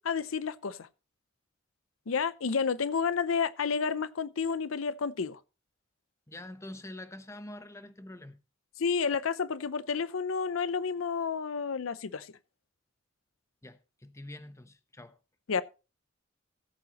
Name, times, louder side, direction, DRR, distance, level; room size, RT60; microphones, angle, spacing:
voice 1, 0.0-0.9 2.1-5.4 8.8-12.3 15.5-15.6, left 5 dB, 90° left, 0.6 m, -30 dB
voice 2, 6.3-8.4 13.6-15.2, left 1 dB, 15° left, 0.9 m, -45 dB
17.0 x 8.3 x 2.9 m
head